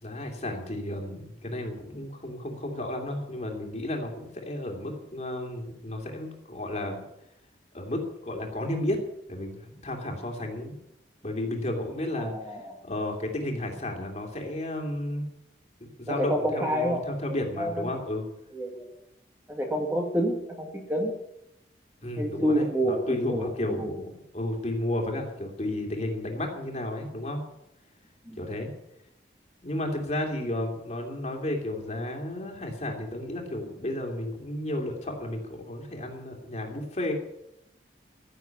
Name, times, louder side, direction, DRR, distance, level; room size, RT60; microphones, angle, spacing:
voice 1, 0.0-7.0 7.7-9.0 9.3-10.7 11.2-15.2 15.8-18.2 22.0-27.4 28.4-28.7 29.6-37.1, left 1 dB, 40° left, 2 dB, 2.9 m, -33 dB
voice 2, 12.2-12.7 16.1-17.0 17.6-18.0 18.5-18.9 19.5-21.1 22.2-23.9 28.3-28.4, equal, 10° right, 1 dB, 2.2 m, -28 dB
15.5 x 7.6 x 9.4 m, 0.83 s
head